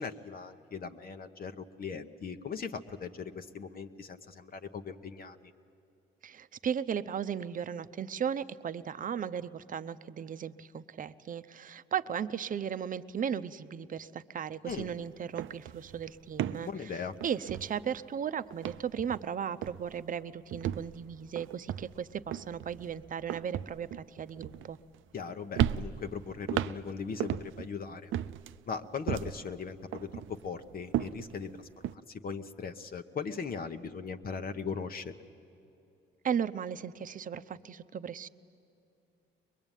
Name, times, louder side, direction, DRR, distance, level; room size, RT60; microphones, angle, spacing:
voice 1, 0.0-5.5 14.6-14.9 16.6-17.1 25.1-28.1 28.7-35.1, left 5 dB, 45° left, 7 dB, 1.0 m, -39 dB
voice 2, 6.2-16.9 17.2-24.8 36.2-38.3, right 8 dB, 45° right, 12 dB, 0.7 m, -36 dB
sound 1, 14.7-14.9 15.2-18.2 18.5-19.3 19.6-20.0 20.5-25.2 25.5-27.7 28.1-29.5 29.9-32.0, right 11 dB, 80° right, 0.5 m, -36 dB
22.5 x 21.5 x 9.1 m, 2.8 s
cardioid pair, 90°, 20 cm